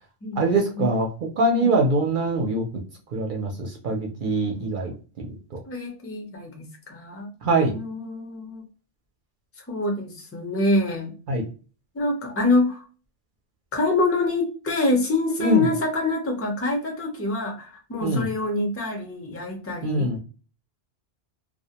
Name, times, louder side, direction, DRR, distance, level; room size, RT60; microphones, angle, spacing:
voice 1, 0.4-1.1 1.4-2.6 3.1-5.3 5.5-5.6 7.4-7.8 11.3-11.4 15.4-15.6 18.0-18.3 19.8-20.2, right 2 dB, 60° right, 2 dB, 0.6 m, -23 dB
voice 2, 5.6-7.3 7.7-8.6 9.6-11.1 11.9-12.9 13.7-20.1, left 2 dB, 20° left, 3 dB, 0.4 m, -26 dB
2.3 x 2.1 x 2.8 m, 0.37 s
omnidirectional pair, 1.1 m